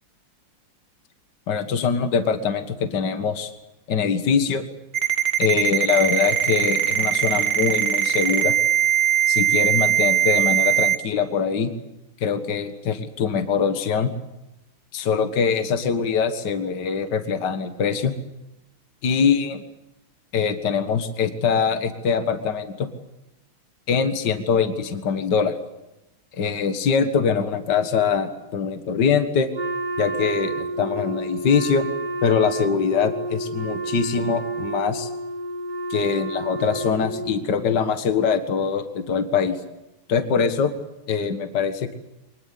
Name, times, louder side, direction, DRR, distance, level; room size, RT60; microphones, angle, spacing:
voice 1, 1.5-3.5 3.9-4.6 5.4-8.5 9.3-11.7 12.2-14.1 14.9-18.1 19.0-19.6 20.3-22.9 23.9-25.5 26.3-29.5 30.0-31.8 32.2-35.1 35.9-39.6 40.1-40.7 41.1-41.9, left 6 dB, 55° left, 8 dB, 2.2 m, -23 dB
Ringtone, 4.9-11.0, right 10 dB, 85° right, 2.8 m, -20 dB
Wind instrument woodwind instrument, 29.5-37.5, right 2 dB, 25° right, 1.7 m, -30 dB
24.5 x 21.0 x 8.5 m, 0.94 s
omnidirectional pair, 2.3 m